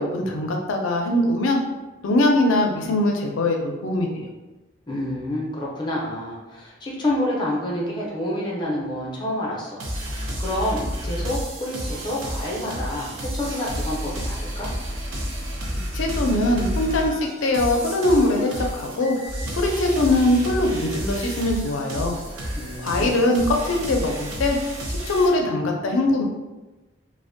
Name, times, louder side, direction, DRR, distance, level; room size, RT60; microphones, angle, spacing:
voice 1, 0.0-1.6 2.0-4.3 15.9-19.2 19.5-22.1 22.8-24.6 24.9-26.2, left 1 dB, 80° left, 1 dB, 0.4 m, -22 dB
voice 2, 4.9-9.9 10.4-14.7 22.6-23.5, left 1 dB, 25° left, -4 dB, 0.4 m, -28 dB
sound 1, 9.8-25.3, equal, 85° right, 0.5 m, -30 dB
2.5 x 2.0 x 2.5 m, 1.1 s
head